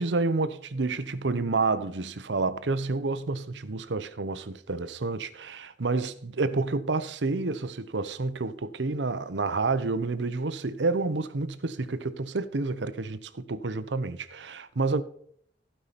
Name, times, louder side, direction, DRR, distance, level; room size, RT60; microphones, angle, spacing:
voice 1, 0.0-15.0, right 3 dB, 80° right, 0.8 m, -29 dB
15.5 x 5.6 x 4.1 m
head